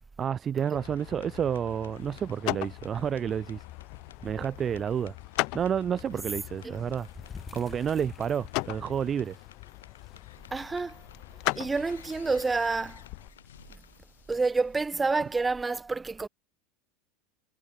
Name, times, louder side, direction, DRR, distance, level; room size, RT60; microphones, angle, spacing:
voice 1, 0.2-3.6 4.2-5.1 5.5-7.1 7.5-9.4, right 8 dB, 35° right, 0.5 m, -30 dB
sound 1, 0.6-15.4, left 10 dB, 85° left, 5.8 m, -56 dB
sound 2, 0.7-13.3, left 27 dB, 60° left, 2.7 m, -39 dB
sound 3, 1.9-14.6, left 5 dB, 20° left, 7.2 m, -54 dB
voice 2, 10.5-11.0 11.5-13.0 14.3-16.3, right 3 dB, 15° right, 2.0 m, -28 dB
hypercardioid pair, 90°, 0 cm